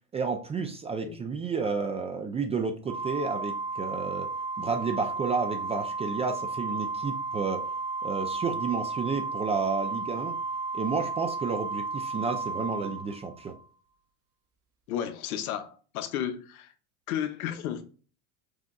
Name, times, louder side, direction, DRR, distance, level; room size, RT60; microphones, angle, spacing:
voice 1, 0.1-4.3 4.6-7.7 8.0-10.3 10.7-13.5, right 5 dB, 15° right, 0.3 m, -31 dB
Organ, 2.9-13.6, right 3 dB, 35° right, 0.7 m, -33 dB
voice 2, 14.9-16.7 17.1-17.8, left 10 dB, 80° left, 0.9 m, -33 dB
6.2 x 3.5 x 2.3 m
hypercardioid pair, 100°, 43 cm